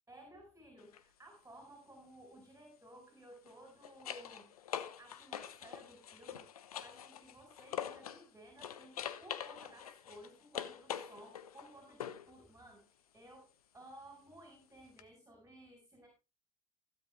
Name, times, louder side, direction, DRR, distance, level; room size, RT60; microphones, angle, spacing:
voice 1, 0.1-4.5 4.8-6.4 6.7-16.1, right 1 dB, 15° right, 3 dB, 4.6 m, -57 dB
sound 1, 0.8-1.0 3.3-8.3 8.6-12.3 15.0-15.1, left 9 dB, 85° left, 0.9 m, -44 dB
15.5 x 8.1 x 3.2 m, 0.29 s
hypercardioid pair, 75°, 18 cm